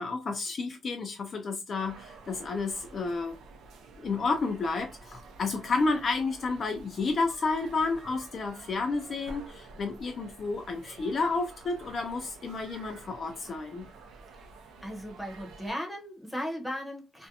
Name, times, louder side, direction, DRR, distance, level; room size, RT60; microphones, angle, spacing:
voice 1, 0.0-3.3 4.0-13.9, left 3 dB, 45° left, 0.4 m, -31 dB
sound 1, 1.8-15.7, right 3 dB, 90° right, 0.5 m, -50 dB
voice 2, 14.8-17.3, equal, 5° left, 0.8 m, -36 dB
2.5 x 2.1 x 2.6 m
cardioid pair, 120°, 0 cm